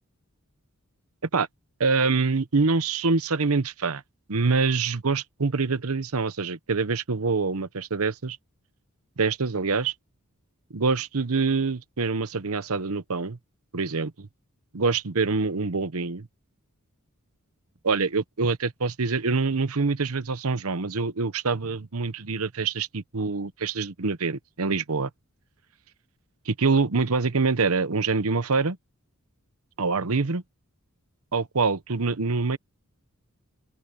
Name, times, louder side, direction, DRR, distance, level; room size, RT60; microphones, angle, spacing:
voice 1, 1.8-4.0 4.3-8.4 9.2-9.9 10.7-13.4 13.7-14.3 14.7-16.3 17.8-25.1 26.5-28.8 29.8-30.4 31.3-32.6, right 4 dB, 75° right, 0.9 m, -25 dB
open air
head